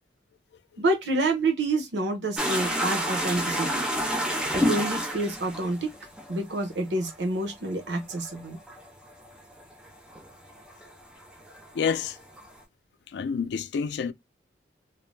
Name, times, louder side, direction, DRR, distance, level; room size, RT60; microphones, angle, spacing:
voice 1, 0.8-3.9 4.5-5.9 6.3-8.6, right 2 dB, 80° right, 0.7 m, -28 dB
sound 1, 2.4-10.9 11.2-12.6, equal, 5° right, 0.4 m, -30 dB
voice 2, 11.7-12.2 13.1-14.1, left 6 dB, 70° left, 0.3 m, -28 dB
2.6 x 2.0 x 3.1 m
head